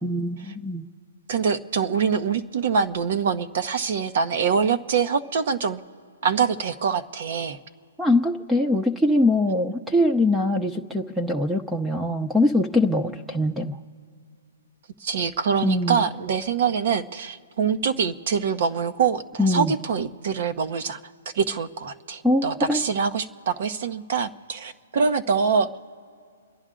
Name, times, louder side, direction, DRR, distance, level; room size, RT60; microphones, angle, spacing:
voice 1, 0.0-0.9 8.0-13.8 15.6-16.1 19.4-19.7 22.2-22.8, left 1 dB, 5° right, 4 dB, 0.7 m, -22 dB
voice 2, 1.3-5.8 6.2-7.6 15.0-21.0 21.3-25.7, right 6 dB, 55° right, 11 dB, 0.9 m, -24 dB
29.0 x 11.0 x 3.8 m, 2.2 s
hypercardioid pair, 130°, 0 cm